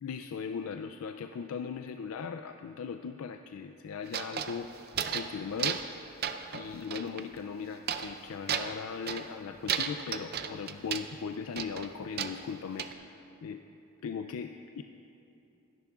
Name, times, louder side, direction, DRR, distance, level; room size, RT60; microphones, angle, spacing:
voice 1, 0.0-6.1 6.5-13.6 14.0-14.8, left 6 dB, 80° left, 7 dB, 0.4 m, -39 dB
sound 1, 4.1-5.3 5.6-6.0 6.2-7.2 7.9-8.2 8.5-9.3 9.7-11.1 11.6-12.9, right 8 dB, 45° right, 0.5 m, -34 dB
27.5 x 10.5 x 2.4 m, 2.8 s
head